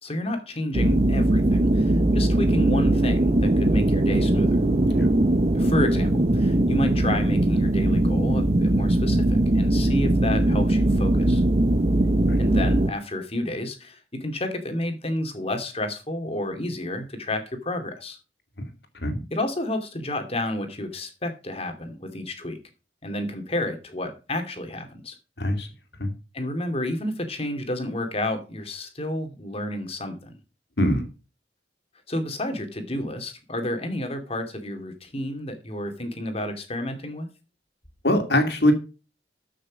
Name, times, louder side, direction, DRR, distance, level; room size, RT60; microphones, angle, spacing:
voice 1, 0.0-4.6 5.5-11.4 12.4-18.2 19.3-22.6 23.0-25.2 26.3-30.4 32.1-37.3, left 1 dB, 35° left, 6 dB, 2.5 m, -30 dB
sound 1, 0.7-12.9, right 1 dB, 35° right, 0.8 m, -20 dB
voice 2, 25.4-25.7 26.0-26.1 30.8-31.0 38.0-38.7, left 1 dB, 65° left, 6 dB, 2.7 m, -22 dB
13.5 x 6.5 x 5.1 m, 0.32 s
head